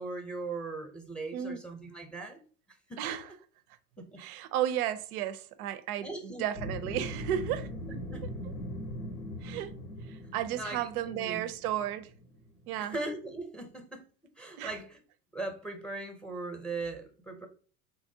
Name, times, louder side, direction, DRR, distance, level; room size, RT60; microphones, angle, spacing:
voice 1, 0.0-2.4 2.9-3.0 4.0-4.2 6.0-6.4 7.9-8.3 10.5-11.5 12.8-14.0 14.4-15.0 15.3-17.5, right 3 dB, ahead, 0.6 m, -39 dB
voice 2, 3.0-3.3 4.2-7.7 9.4-9.7 10.1-12.1 12.7-12.9 14.6-14.7, right 11 dB, 85° right, 0.5 m, -33 dB
sound 1, 6.5-12.8, equal, 90° left, 0.8 m, -40 dB
3.6 x 3.1 x 2.7 m
hypercardioid pair, 85°, 43 cm